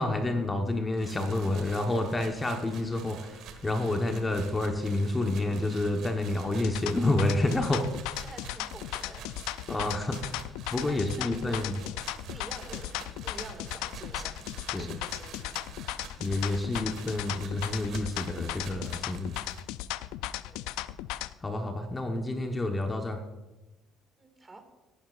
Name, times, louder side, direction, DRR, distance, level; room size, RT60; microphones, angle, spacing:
voice 1, 0.0-7.9 9.7-11.8 14.7-14.9 16.2-19.4 21.4-23.2, left 2 dB, 20° left, 4 dB, 1.1 m, -29 dB
sound 1, 1.0-19.6, right 6 dB, 70° right, 1.6 m, -47 dB
sound 2, 6.5-21.3, left 15 dB, 85° left, 0.4 m, -36 dB
voice 2, 8.2-9.4 10.9-12.0 12.3-15.7 20.4-20.8 24.2-24.6, right 2 dB, 20° right, 6 dB, 2.0 m, -48 dB
14.5 x 11.5 x 2.5 m, 1.1 s
supercardioid pair, 90°, 0 cm